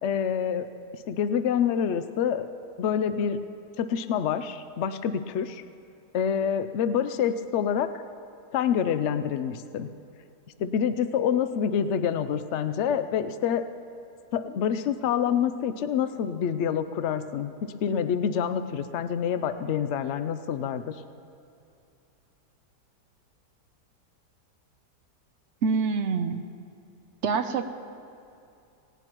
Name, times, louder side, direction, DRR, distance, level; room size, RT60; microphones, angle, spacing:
voice 1, 0.0-0.7 1.1-2.5 2.8-3.4 3.8-5.6 6.1-7.9 8.5-9.9 10.6-13.6 14.3-17.5 17.8-21.0, left 8 dB, 85° left, 11 dB, 0.6 m, -27 dB
voice 2, 25.6-26.4 27.2-27.7, right 5 dB, 60° right, 8 dB, 0.7 m, -26 dB
18.5 x 17.5 x 3.0 m, 2.7 s
omnidirectional pair, 1.8 m